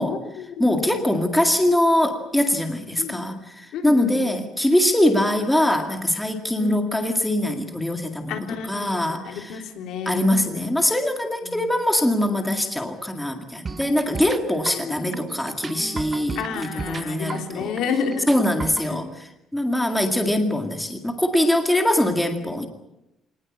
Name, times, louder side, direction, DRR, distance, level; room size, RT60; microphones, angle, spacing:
voice 1, 0.1-0.9 3.0-3.2 3.7-4.4 6.6-6.8 8.3-10.2 10.5-10.6 11.4-11.7 14.3-15.1 16.4-18.3 18.9-19.0, left 6 dB, 70° left, 5 dB, 3.5 m, -31 dB
voice 2, 0.6-9.6 10.1-17.8 18.3-22.7, left 1 dB, 5° left, 5 dB, 2.1 m, -23 dB
sound 1, 13.7-18.9, right 4 dB, 20° right, 0.8 m, -35 dB
25.0 x 19.5 x 8.6 m, 0.87 s
cardioid pair, 165°, 0 cm